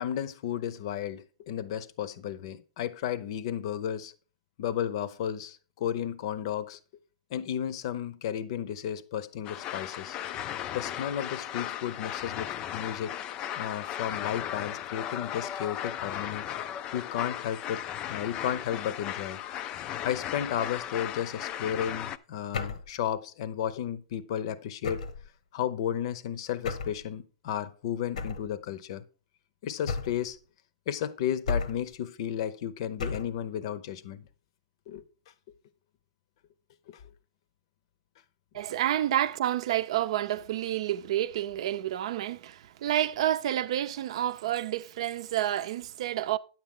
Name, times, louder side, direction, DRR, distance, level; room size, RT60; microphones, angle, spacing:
voice 1, 0.0-4.1 4.6-6.8 7.3-10.4 10.7-13.2 13.5-16.5 16.9-19.4 20.0-25.0 25.5-29.0 29.6-30.4 30.9-34.3 34.9-35.0 36.9-37.0, left 10 dB, 50° left, 0.7 m, -33 dB
sound 1, 9.4-22.2, left 11 dB, 25° left, 0.3 m, -36 dB
sound 2, 22.5-22.9 24.8-25.3 26.6-27.0 28.2-28.5 29.9-30.3 31.5-31.9 33.0-33.4, left 4 dB, 90° left, 1.1 m, -33 dB
voice 2, 38.5-46.4, right 12 dB, 60° right, 0.6 m, -29 dB
9.8 x 7.4 x 3.8 m
hypercardioid pair, 160°, 4 cm